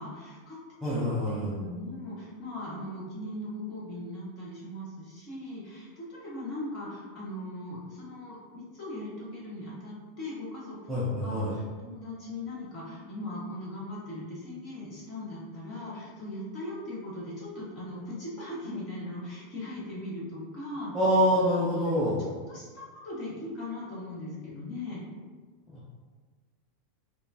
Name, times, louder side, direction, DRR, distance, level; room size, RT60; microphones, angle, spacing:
voice 1, 0.0-10.8 11.2-21.3 21.7-22.1 22.5-25.0, left 1 dB, 30° left, -7 dB, 1.4 m, -39 dB
voice 2, 0.8-1.5 10.9-11.5 20.9-22.2, equal, 5° right, -10 dB, 0.6 m, -25 dB
4.8 x 2.3 x 2.7 m, 1.4 s
supercardioid pair, 170°, 0 cm